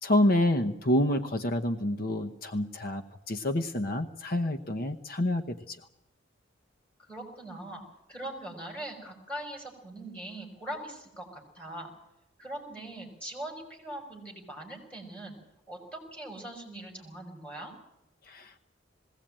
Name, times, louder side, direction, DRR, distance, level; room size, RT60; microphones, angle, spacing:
voice 1, 0.0-5.8 18.2-18.7, left 1 dB, 50° left, 5 dB, 0.9 m, -28 dB
voice 2, 7.0-7.8 8.1-11.9 12.4-15.4 15.7-17.7, right 1 dB, 5° left, 0 dB, 5.5 m, -41 dB
21.0 x 16.5 x 8.9 m, 0.88 s
head